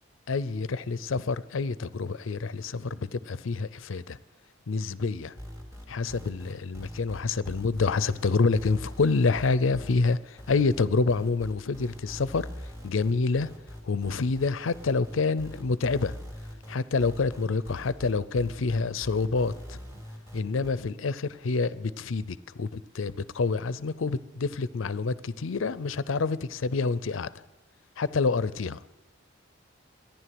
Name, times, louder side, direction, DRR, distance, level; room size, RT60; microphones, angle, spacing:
voice 1, 0.3-4.2 4.7-5.3 5.9-12.5 12.8-13.5 13.8-16.1 16.7-19.8 20.3-27.3 28.0-28.8, left 4 dB, 75° left, 0.6 m, -27 dB
sound 1, 5.4-20.7, equal, 15° right, 2.7 m, -42 dB
14.5 x 10.5 x 7.7 m
head